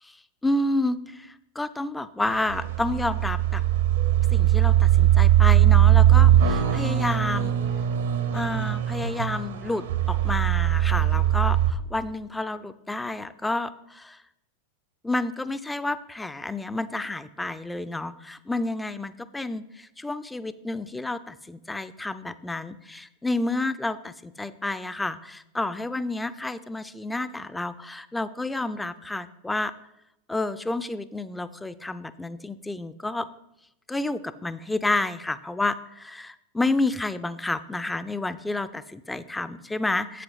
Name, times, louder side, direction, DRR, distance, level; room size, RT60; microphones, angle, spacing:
voice 1, 0.4-3.6 4.3-7.6 8.3-14.2 15.0-29.7 30.3-33.3 33.9-40.2, left 2 dB, 5° left, 14 dB, 0.3 m, -30 dB
sound 1, 2.3-11.7, right 12 dB, 60° right, 0.6 m, -20 dB
8.2 x 6.6 x 3.9 m, 0.86 s
figure-of-eight pair, 90°, 0 cm